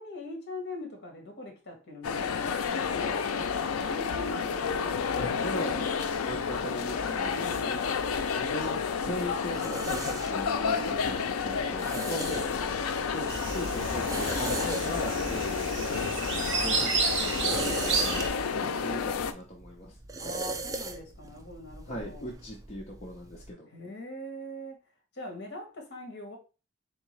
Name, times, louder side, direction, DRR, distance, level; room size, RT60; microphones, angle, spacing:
voice 1, 0.0-5.9 7.2-7.9 11.9-13.0 15.3-15.8 20.2-22.3 23.7-24.8 25.1-26.4, left 1 dB, 55° left, 1.2 m, -42 dB
sound 1, 2.0-19.3, left 6 dB, 85° left, 0.4 m, -30 dB
voice 2, 5.2-7.8 8.3-12.5 13.1-16.1 16.6-18.2 18.5-19.9 21.9-23.7, equal, 30° left, 0.7 m, -39 dB
sound 2, 8.0-23.5, right 3 dB, 15° right, 0.3 m, -40 dB
sound 3, 13.3-18.3, right 4 dB, 60° right, 0.9 m, -31 dB
3.6 x 3.5 x 3.1 m
head